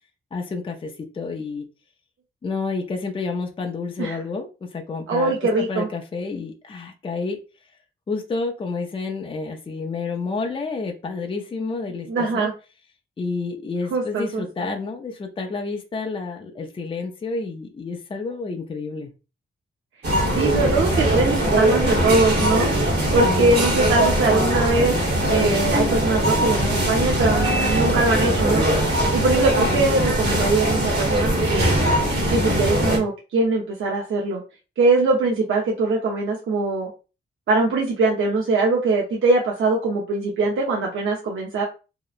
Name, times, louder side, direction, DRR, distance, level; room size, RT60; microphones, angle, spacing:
voice 1, 0.3-1.7 2.4-7.4 8.1-12.5 13.2-19.1 23.2-23.7, left 4 dB, 25° left, 3 dB, 0.4 m, -29 dB
voice 2, 5.1-5.9 12.1-12.5 13.9-14.7 20.3-22.7 23.1-25.0 25.3-28.7 29.1-31.7 32.3-34.4 34.8-36.9 37.5-41.6, right 3 dB, 75° right, -1 dB, 0.6 m, -22 dB
sound 1, 20.0-33.0, right 1 dB, 55° right, 1.0 m, -21 dB
2.8 x 2.0 x 2.3 m, 0.31 s
wide cardioid pair, 110°, 21 cm